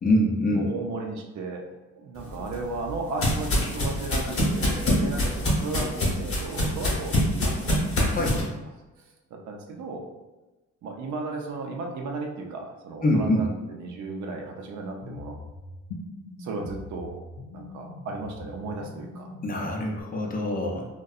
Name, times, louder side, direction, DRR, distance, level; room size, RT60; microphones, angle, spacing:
voice 1, 0.0-0.7 8.1-8.4 13.0-13.5 19.4-20.9, left 1 dB, 30° left, 0 dB, 0.5 m, -24 dB
voice 2, 0.5-1.6 1.9-7.8 8.2-8.3 9.3-10.0 10.8-15.3 16.4-17.1 17.5-19.3, right 3 dB, 70° right, 2 dB, 0.5 m, -35 dB
sound 1, 2.3-8.4, left 1 dB, 45° left, 0.9 m, -25 dB
sound 2, 15.0-20.0, left 2 dB, 85° left, 0.5 m, -42 dB
2.6 x 2.2 x 2.3 m, 1.1 s
cardioid pair, 90°, 30 cm